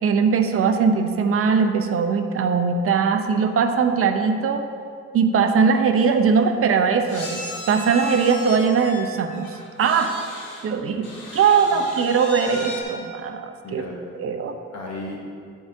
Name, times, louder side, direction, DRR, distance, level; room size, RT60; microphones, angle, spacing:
voice 1, 0.0-4.6 5.1-7.4 7.7-10.2 10.6-11.0 11.3-13.8 14.1-14.5, right 6 dB, 50° right, 6 dB, 0.7 m, -20 dB
sound 1, 5.7-5.8 6.0-6.1 7.1-10.7 11.0-12.8, left 1 dB, 85° left, 1.4 m, -35 dB
voice 2, 10.7-11.4 11.7-11.8 13.6-14.0 14.7-15.2, left 2 dB, 60° left, -1 dB, 1.1 m, -36 dB
10.5 x 4.7 x 2.8 m, 2.3 s
cardioid pair, 90°, 30 cm